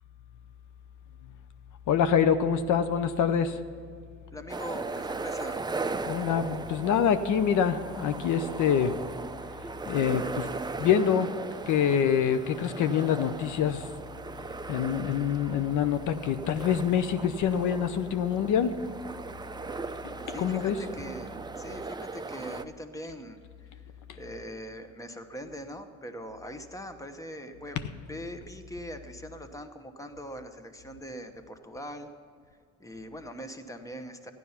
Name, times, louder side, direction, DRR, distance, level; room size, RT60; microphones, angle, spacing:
voice 1, 1.9-3.6 6.1-8.9 9.9-10.5 10.8-11.3 11.7-13.9 14.7-18.7 20.4-20.8, left 8 dB, 80° left, 11 dB, 0.7 m, -25 dB
voice 2, 4.3-5.6 20.3-23.4 23.7-27.8 28.1-32.1 32.8-34.3, equal, 10° left, 8 dB, 1.0 m, -42 dB
sound 1, 4.5-22.6, right 3 dB, 15° right, 0.5 m, -38 dB
13.5 x 11.0 x 5.7 m, 2.1 s
cardioid pair, 90°, 30 cm